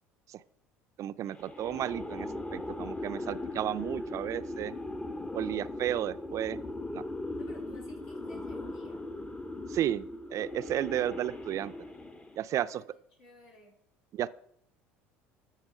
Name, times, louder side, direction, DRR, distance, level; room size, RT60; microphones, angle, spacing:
voice 1, 1.0-4.7 5.3-6.6 6.9-7.0 9.7-11.7 12.4-12.8 14.1-14.3, right 11 dB, 50° right, 14 dB, 0.5 m, -33 dB
sound 1, 1.3-12.5, left 2 dB, 15° left, 0.8 m, -39 dB
voice 2, 7.4-9.1 12.5-12.9 13.2-13.8, left 3 dB, 75° left, -2 dB, 3.7 m, -55 dB
14.0 x 5.7 x 4.9 m, 0.70 s
hypercardioid pair, 65°, 7 cm